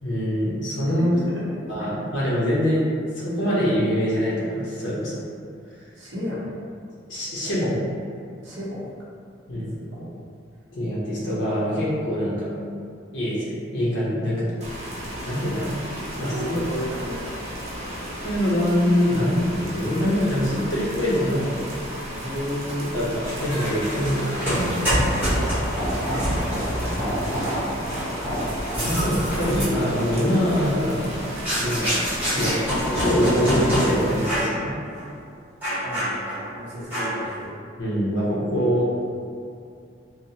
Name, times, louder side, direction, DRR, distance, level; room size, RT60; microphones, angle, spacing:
voice 1, 0.0-1.1 1.7-2.9 3.1-5.1 7.1-7.8 9.5-9.7 10.7-12.5 13.1-14.5 15.2-15.8 16.2-16.3 18.2-21.6 22.8-24.9 26.8-27.6 28.8-31.2 31.6-32.1 32.3-32.6 32.9-34.7 37.8-39.1, equal, 70° left, -8 dB, 0.6 m, -24 dB
voice 2, 1.1-1.4 1.8-1.9 6.0-6.5 8.4-8.9 9.8-10.1 16.3-17.3 17.8-18.1 22.2-22.8 25.9-26.6 27.6-28.5 35.8-36.1 36.5-37.5, equal, 65° right, -7 dB, 0.7 m, -33 dB
sound 1, 14.6-34.5, equal, 35° right, 0.5 m, -35 dB
sound 2, 23.2-33.9 34.2-34.6 34.9-35.1 35.6-36.5 36.9-37.3, equal, 10° right, 1.0 m, -26 dB
2.7 x 2.0 x 2.7 m, 2.3 s
head